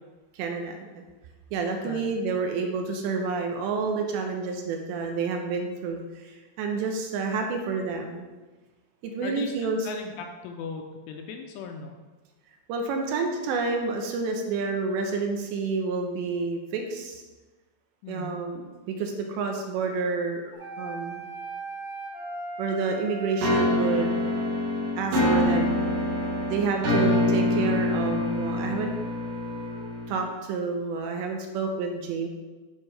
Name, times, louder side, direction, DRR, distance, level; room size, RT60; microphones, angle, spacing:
voice 1, 0.3-1.0 1.5-8.3 9.0-9.9 12.7-17.2 18.1-21.2 22.6-24.2 25.0-25.8 26.5-28.9 30.1-32.3, right 4 dB, 80° right, 3 dB, 2.9 m, -29 dB
voice 2, 9.2-12.0 18.0-18.4, left 5 dB, 80° left, 3 dB, 2.6 m, -38 dB
sound 1, 20.5-24.5 25.3-29.8, right 3 dB, 40° left, 0.5 m, -40 dB
sound 2, 23.4-30.3, left 1 dB, 60° right, 2.1 m, -25 dB
10.5 x 5.2 x 3.3 m, 1.2 s
omnidirectional pair, 5.3 m